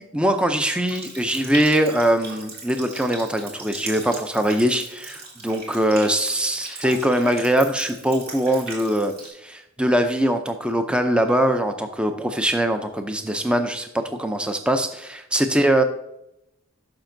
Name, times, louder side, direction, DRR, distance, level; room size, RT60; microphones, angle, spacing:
voice 1, 0.0-15.8, right 1 dB, 5° right, 7 dB, 0.4 m, -22 dB
Water tap faucet, 0.9-9.3, right 3 dB, 50° right, 2.4 m, -38 dB
11.5 x 5.8 x 2.6 m, 0.82 s
head